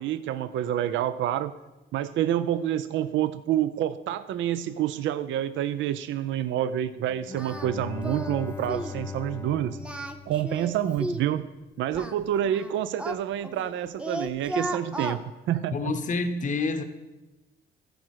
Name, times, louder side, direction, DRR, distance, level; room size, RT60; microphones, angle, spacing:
voice 1, 0.0-1.5 1.9-9.8 10.3-11.4 11.8-15.2 15.5-15.9, right 11 dB, 75° right, 13 dB, 0.4 m, -28 dB
Bowed string instrument, 7.1-11.2, left 5 dB, 15° left, 0.4 m, -39 dB
Singing, 7.4-7.7 8.0-8.4 8.7-9.0 9.7-11.3 11.9-13.7 14.0-15.2, right 1 dB, 5° right, 0.8 m, -34 dB
voice 2, 15.7-16.8, left 3 dB, 40° left, 8 dB, 0.7 m, -28 dB
14.0 x 4.9 x 4.7 m, 1.1 s
cardioid pair, 90°, 20 cm